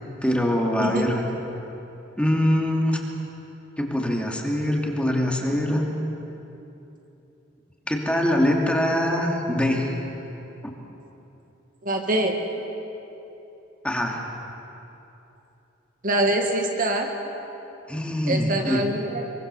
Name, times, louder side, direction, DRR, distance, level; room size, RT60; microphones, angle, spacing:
voice 1, 0.2-1.2 2.2-3.0 3.8-5.9 7.9-9.9 10.6-10.7 13.8-14.2 17.9-18.8, left 1 dB, 5° left, 0 dB, 2.7 m, -23 dB
voice 2, 11.8-12.4 16.0-17.1 18.2-19.2, right 1 dB, 45° right, 3 dB, 1.9 m, -24 dB
24.0 x 24.0 x 7.1 m, 3.0 s
head